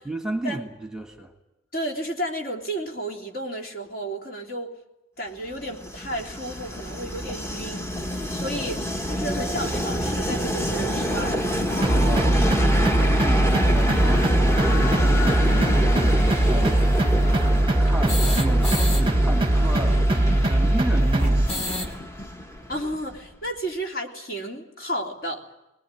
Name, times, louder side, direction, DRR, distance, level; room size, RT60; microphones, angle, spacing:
voice 1, 0.1-1.3 12.0-17.3 17.8-21.9 22.6-22.7, right 1 dB, 5° right, 3 dB, 1.7 m, -33 dB
voice 2, 1.7-4.7 5.2-11.5 22.7-25.5, right 1 dB, 50° left, 1 dB, 3.4 m, -32 dB
Train, 5.6-23.3, equal, 15° left, 1.2 m, -28 dB
sound 1, 11.1-11.2 11.5-11.6 11.9-12.0 12.3-19.0 19.3-19.4 19.6-22.0, left 1 dB, 30° left, 2.7 m, -34 dB
sound 2, 11.8-21.5, right 1 dB, 25° right, 0.8 m, -20 dB
22.5 x 20.0 x 9.1 m, 0.96 s
head